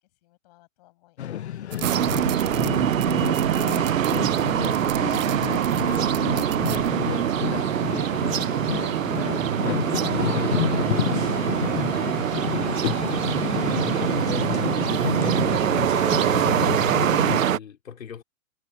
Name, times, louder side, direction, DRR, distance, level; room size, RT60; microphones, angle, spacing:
voice 1, 0.0-1.3 1.6-2.1 8.2-9.2, left 19 dB, 30° left, 7.3 m, -56 dB
sound 1, 1.2-17.4, left 11 dB, 55° left, 1.0 m, -30 dB
Ice - Styrofoam - Crackling - Foley, 1.7-6.9, right 16 dB, 30° right, 2.2 m, -39 dB
sound 2, 1.8-17.6, right 10 dB, 80° right, 1.0 m, -24 dB
voice 2, 15.0-16.6 17.2-18.2, left 7 dB, 80° left, 4.6 m, -37 dB
hypercardioid pair, 170°, 39 cm